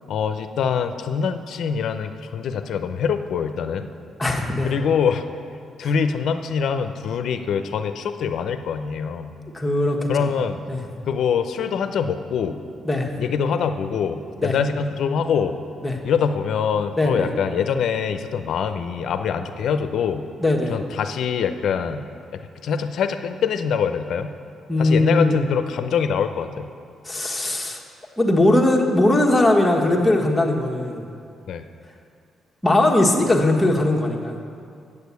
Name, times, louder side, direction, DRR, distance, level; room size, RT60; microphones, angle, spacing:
voice 1, 0.1-3.9 4.6-5.3 5.8-9.3 10.1-10.7 11.1-12.6 13.2-15.6 16.0-20.2 20.7-22.1 22.3-24.3 24.8-26.7 31.5-31.7, left 7 dB, 70° left, 9 dB, 0.6 m, -24 dB
voice 2, 4.2-4.7 5.8-5.9 9.5-10.3 10.7-10.8 12.8-13.1 14.4-14.6 15.8-16.0 17.0-17.3 20.4-20.7 24.7-25.4 27.0-27.8 28.2-31.1 32.6-34.4, left 1 dB, 10° left, 0 dB, 1.4 m, -20 dB
8.5 x 6.7 x 8.3 m, 2.4 s
cardioid pair, 90°, 0 cm